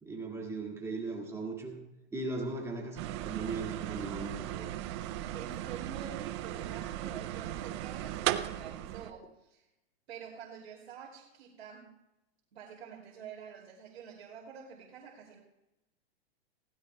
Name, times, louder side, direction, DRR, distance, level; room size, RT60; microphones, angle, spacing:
voice 1, 0.0-1.8 2.1-4.7, right 3 dB, 10° right, -1 dB, 2.0 m, -38 dB
sound 1, 3.0-9.1, right 13 dB, 30° right, 0.4 m, -37 dB
voice 2, 5.3-9.6 10.1-11.9 12.5-15.4, right 7 dB, 70° right, -2 dB, 2.6 m, -47 dB
19.0 x 16.0 x 2.2 m, 0.93 s
hypercardioid pair, 145°, 32 cm